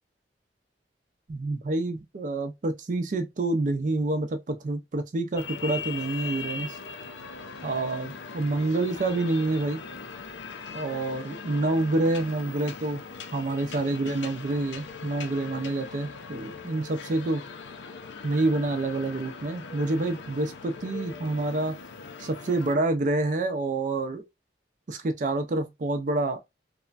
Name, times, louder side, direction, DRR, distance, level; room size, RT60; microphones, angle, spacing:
voice 1, 1.3-6.8 7.6-9.8 10.7-13.0 13.3-17.4 18.2-21.8 22.2-24.2 24.9-26.4, right 2 dB, 45° right, 0.4 m, -27 dB
sound 1, 5.4-22.8, left 5 dB, 85° left, 0.5 m, -40 dB
3.1 x 2.1 x 2.3 m
head